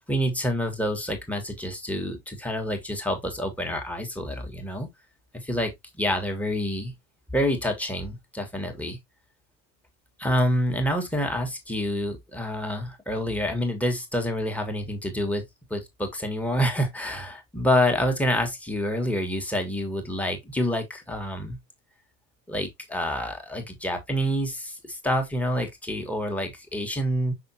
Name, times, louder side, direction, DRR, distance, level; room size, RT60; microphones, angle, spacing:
voice 1, 0.1-4.9 5.3-6.9 7.3-9.0 10.2-15.5 15.7-21.6 22.5-27.3, equal, 5° left, 1.8 m, -27 dB
6.0 x 5.9 x 2.9 m
figure-of-eight pair, 80°, 50 cm